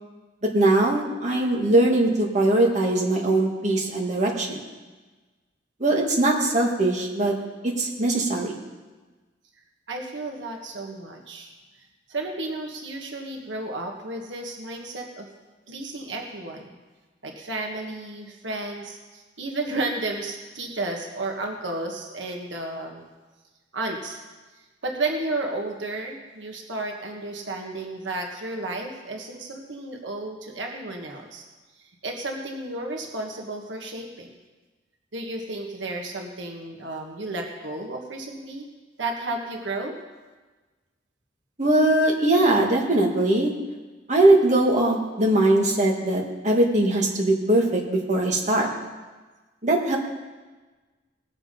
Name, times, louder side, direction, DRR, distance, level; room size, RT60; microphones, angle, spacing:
voice 1, 0.5-4.6 5.8-7.4 7.6-8.6 41.6-43.5 44.1-48.7 49.6-50.0, right 1 dB, 40° right, -1 dB, 1.8 m, -21 dB
voice 2, 9.9-11.5 12.1-15.3 15.7-16.8 17.2-23.0 23.7-24.2 24.8-31.4 31.8-34.3 35.1-38.7 39.0-40.0, right 2 dB, 80° right, 2 dB, 1.5 m, -32 dB
19.0 x 7.2 x 5.2 m, 1.3 s
head